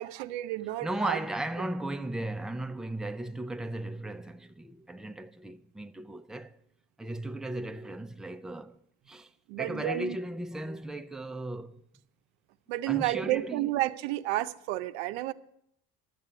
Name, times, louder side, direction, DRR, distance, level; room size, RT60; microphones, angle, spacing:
voice 1, 0.0-1.2 9.5-10.2 12.7-15.3, right 16 dB, 85° right, 0.6 m, -31 dB
voice 2, 0.8-6.6 7.0-8.8 9.1-9.3 9.6-11.8 12.9-13.7, right 1 dB, ahead, 0.6 m, -36 dB
12.5 x 7.4 x 7.7 m
supercardioid pair, 80°, 33 cm